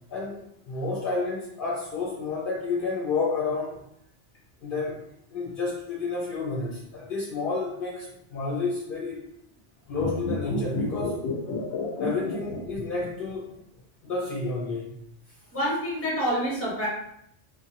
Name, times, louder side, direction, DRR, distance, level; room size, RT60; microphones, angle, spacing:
voice 1, 0.7-3.8 4.6-5.0 5.3-9.3 9.9-11.2 12.0-13.5 14.0-15.0, left 3 dB, 60° left, -4 dB, 0.7 m, -30 dB
sound 1, 9.9-13.3 13.6-13.7, left 2 dB, 90° left, 0.9 m, -31 dB
voice 2, 15.5-16.9, equal, 15° left, -6 dB, 0.8 m, -27 dB
2.7 x 2.1 x 2.8 m, 0.76 s
omnidirectional pair, 1.1 m